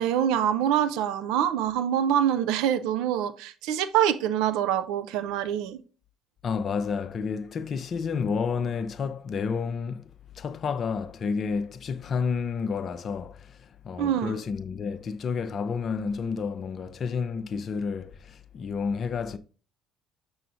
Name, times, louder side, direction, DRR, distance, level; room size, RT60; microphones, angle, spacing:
voice 1, 0.0-5.8 14.0-14.4, right 10 dB, 70° right, 0.5 m, -25 dB
voice 2, 6.4-19.4, left 5 dB, 45° left, 0.6 m, -30 dB
6.7 x 6.3 x 2.5 m
hypercardioid pair, 55°, 0 cm